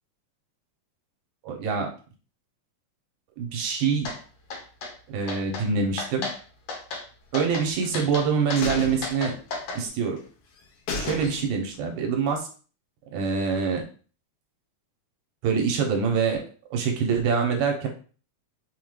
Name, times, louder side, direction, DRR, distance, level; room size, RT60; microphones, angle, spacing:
voice 1, 1.4-1.9 3.4-4.1 5.1-6.3 7.3-9.3 9.7-10.2 11.0-12.4 13.1-13.8 15.4-16.4 16.7-17.9, right 6 dB, 80° right, 2 dB, 2.1 m, -25 dB
sound 1, 4.1-4.2 4.5-4.9 5.3-5.7 6.0-6.4 6.7-7.0 7.3-7.7 7.9-9.8, left 3 dB, 65° left, 1.9 m, -33 dB
sound 2, 7.5-8.2 8.6-9.8 10.2-10.3 10.6-10.7 10.9-11.8 12.1-12.2, left 4 dB, 85° left, 2.3 m, -34 dB
5.5 x 2.2 x 3.1 m, 0.39 s
omnidirectional pair, 3.4 m